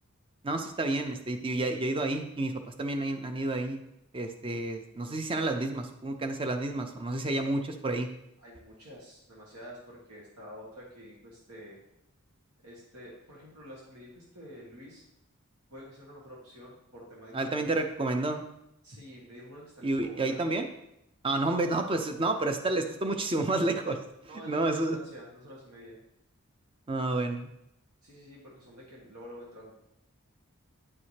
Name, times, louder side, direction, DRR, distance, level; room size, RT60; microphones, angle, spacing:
voice 1, 0.4-3.8 4.1-8.1 17.3-18.4 19.8-20.7 21.2-24.0 24.5-25.0 26.9-27.5, right 2 dB, 25° right, 6 dB, 0.5 m, -30 dB
voice 2, 8.4-11.8 12.6-15.0 15.7-17.8 18.8-20.4 21.6-21.8 24.3-26.0 28.0-29.7, equal, 90° right, -4 dB, 1.7 m, -48 dB
9.7 x 4.8 x 2.8 m, 0.82 s
head